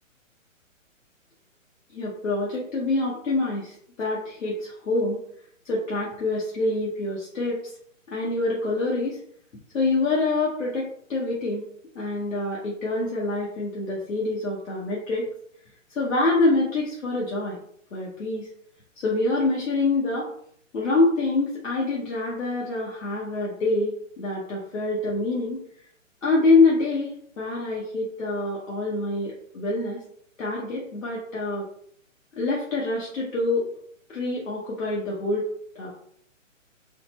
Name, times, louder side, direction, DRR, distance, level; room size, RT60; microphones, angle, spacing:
voice 1, 1.9-5.2 5.6-7.7 8.1-9.2 9.7-11.6 11.9-15.3 15.9-17.6 17.9-18.5 19.0-20.3 20.7-25.6 26.2-30.0 30.4-31.6 32.4-33.6 34.1-35.4 35.7-35.9, left 2 dB, 75° left, -5 dB, 1.3 m, -25 dB
4.0 x 2.1 x 4.3 m, 0.65 s
hypercardioid pair, 145°, 40 cm